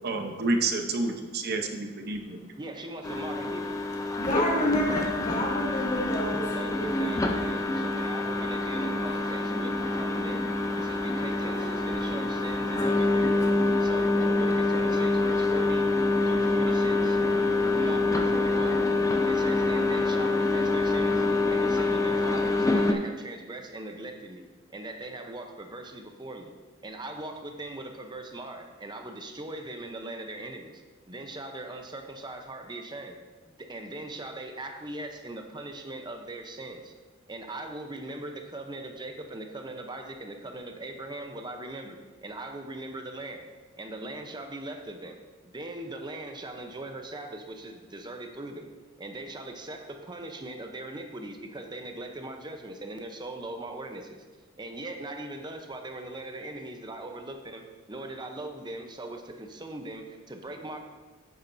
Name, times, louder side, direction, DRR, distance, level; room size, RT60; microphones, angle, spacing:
voice 1, 0.0-2.5, right 2 dB, 50° right, 5 dB, 0.9 m, -29 dB
voice 2, 2.6-3.8 6.5-10.4 10.7-13.3 13.8-15.9 16.3-17.2 17.8-18.9 19.2-26.6 26.8-30.8 31.1-33.2 33.5-36.9 37.3-43.5 43.8-48.7 49.0-54.2 54.6-60.9, right 2 dB, 20° right, 4 dB, 0.8 m, -40 dB
sound 1, 3.0-22.9, left 2 dB, 15° left, 0.6 m, -26 dB
voice 3, 4.2-7.5 9.1-9.2 11.6-11.7 12.7-13.2 13.5-13.7, left 1 dB, 35° left, -4 dB, 2.3 m, -31 dB
10.0 x 8.6 x 2.7 m, 1.3 s
head